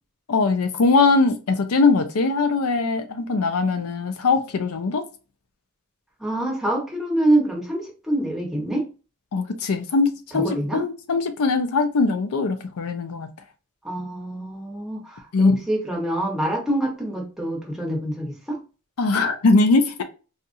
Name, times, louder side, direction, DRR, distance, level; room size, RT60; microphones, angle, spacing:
voice 1, 0.3-5.0 9.3-13.3 15.3-15.6 19.0-20.0, left 3 dB, 75° left, 0.5 m, -21 dB
voice 2, 6.2-8.8 10.3-10.8 13.8-18.6, right 1 dB, ahead, 1.1 m, -25 dB
4.0 x 2.5 x 2.5 m
head